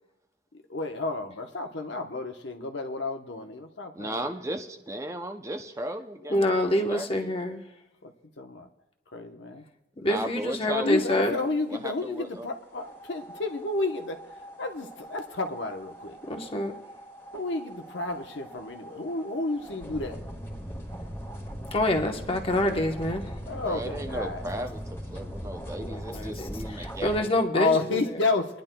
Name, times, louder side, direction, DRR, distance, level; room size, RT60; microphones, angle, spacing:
voice 1, 0.7-4.3 6.3-6.6 8.0-8.7 9.1-9.6 10.8-16.2 17.3-20.2 23.5-24.4 27.5-28.6, left 3 dB, 80° left, 5 dB, 0.9 m, -31 dB
voice 2, 3.9-7.3 10.0-10.9 11.7-12.5 23.5-27.3, right 1 dB, 15° right, 6 dB, 0.5 m, -36 dB
voice 3, 6.3-7.6 10.0-11.4 16.3-16.7 21.7-23.3 25.8-28.1, left 1 dB, 30° left, 4 dB, 1.0 m, -27 dB
sound 1, 12.8-27.2, equal, 15° left, 1.6 m, -40 dB
23.5 x 10.5 x 2.2 m, 0.92 s
head